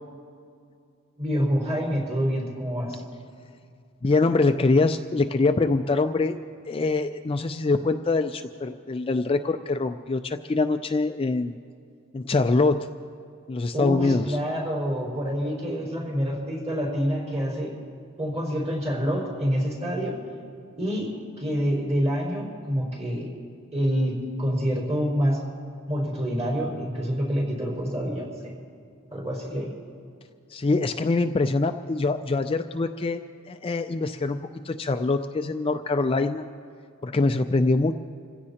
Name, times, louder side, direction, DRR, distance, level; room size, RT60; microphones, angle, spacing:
voice 1, 1.2-3.0 13.7-17.7 18.2-20.1 20.7-21.1 21.4-23.3 23.7-25.4 25.9-28.5 29.1-29.7, equal, 30° right, -3 dB, 5.0 m, -27 dB
voice 2, 4.0-6.3 6.7-11.6 12.1-12.9 13.5-14.4 30.5-33.2 33.5-36.4 37.0-37.9, left 3 dB, 25° left, 7 dB, 0.4 m, -24 dB
28.5 x 16.0 x 2.9 m, 2.3 s
head